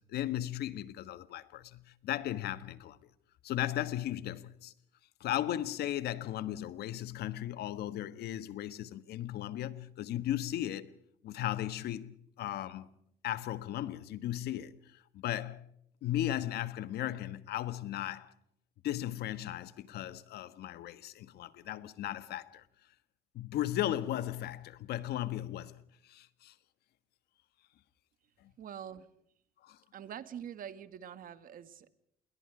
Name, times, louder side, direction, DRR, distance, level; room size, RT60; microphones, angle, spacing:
voice 1, 0.0-3.0 3.4-4.7 5.2-10.9 11.2-12.9 13.2-15.6 16.0-18.3 18.8-22.6 23.3-25.7 26.0-26.5 28.4-28.5 29.6-29.8, left 13 dB, 70° left, 1.4 m, -36 dB
voice 2, 28.6-29.1 29.9-31.9, right 9 dB, 55° right, 1.8 m, -45 dB
28.0 x 22.0 x 4.9 m
cardioid pair, 110°, 17 cm